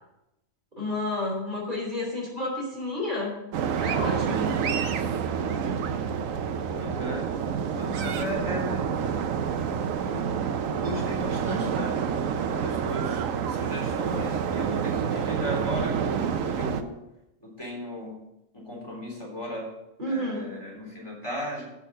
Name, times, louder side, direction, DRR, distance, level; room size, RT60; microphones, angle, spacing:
voice 1, 0.8-3.4 3.8-4.5 20.0-20.5, left 2 dB, 35° right, -3 dB, 3.2 m, -30 dB
sound 1, 3.5-16.8, right 7 dB, 90° right, 1.1 m, -28 dB
voice 2, 6.7-7.3 7.6-8.8 10.1-10.2 10.7-12.2 12.6-17.0 17.4-18.1 18.5-19.7 20.0-21.6, equal, 20° left, -4 dB, 3.5 m, -35 dB
8.4 x 6.1 x 6.9 m, 0.88 s
omnidirectional pair, 1.3 m